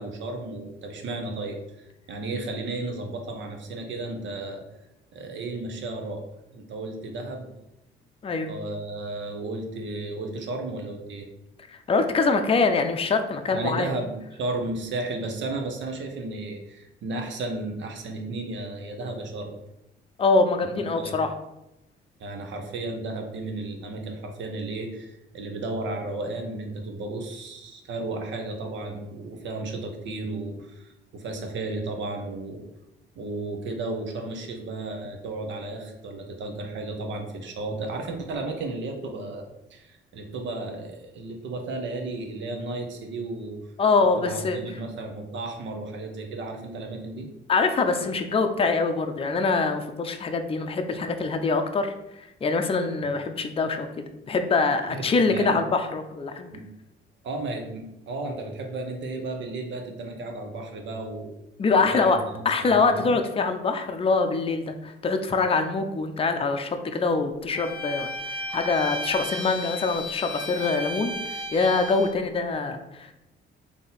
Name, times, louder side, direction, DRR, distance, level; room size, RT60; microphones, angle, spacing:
voice 1, 0.0-4.6 5.1-6.2 6.5-7.5 8.5-11.3 13.5-19.6 20.7-21.2 22.2-32.6 33.1-43.6 44.2-47.3 53.0-53.1 54.9-55.6 56.5-56.6 57.2-61.4 61.7-63.1, right 2 dB, 70° right, 4 dB, 0.9 m, -34 dB
voice 2, 11.7-13.9 20.2-21.3 43.8-44.6 47.5-51.9 52.4-56.5 61.6-73.1, left 4 dB, 30° left, 6 dB, 0.5 m, -24 dB
Bowed string instrument, 67.5-72.2, left 1 dB, 25° right, 0.9 m, -34 dB
3.9 x 2.8 x 3.9 m, 0.89 s
cardioid pair, 90°, 20 cm